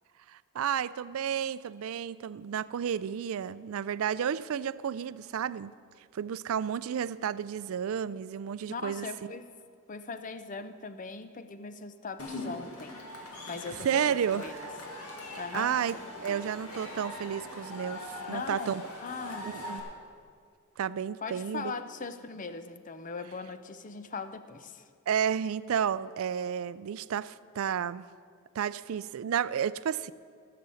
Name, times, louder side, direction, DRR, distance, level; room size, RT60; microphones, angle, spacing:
voice 1, 0.3-5.7 6.1-9.1 13.8-14.7 15.5-18.8 19.5-19.8 20.8-21.7 25.1-28.0 28.6-30.1, right 8 dB, 70° right, 17 dB, 0.4 m, -32 dB
voice 2, 8.7-9.5 9.9-13.0 13.5-14.5 15.4-16.4 18.2-19.5 21.2-24.8, left 4 dB, 35° left, 10 dB, 0.6 m, -40 dB
Cheering / Crowd, 12.2-19.8, left 1 dB, 85° left, 2.0 m, -41 dB
14.5 x 6.9 x 7.0 m, 2.2 s
head